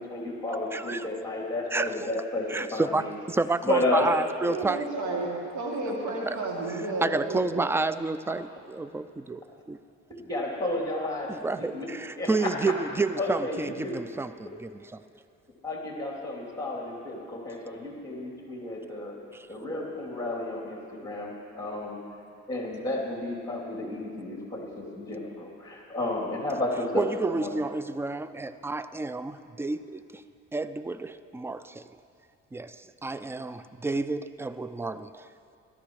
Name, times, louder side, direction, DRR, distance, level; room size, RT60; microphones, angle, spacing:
voice 1, 0.0-3.1 3.6-4.1 10.1-11.3 11.6-11.9 12.2-12.7 13.2-14.1 15.6-19.1 19.5-22.0 22.5-27.1 27.3-27.5, left 2 dB, 10° left, -2 dB, 3.0 m, -32 dB
voice 2, 0.7-1.1 1.7-1.9 2.5-4.9 6.3-6.4 6.7-9.8 11.3-15.0 19.3-19.5 26.9-30.2 30.5-31.8 32.5-35.3, right 3 dB, 10° right, 13 dB, 0.3 m, -30 dB
voice 3, 4.3-7.5, right 2 dB, 75° right, -3 dB, 2.7 m, -32 dB
17.0 x 13.0 x 3.2 m, 2.5 s
cardioid pair, 90°, 30 cm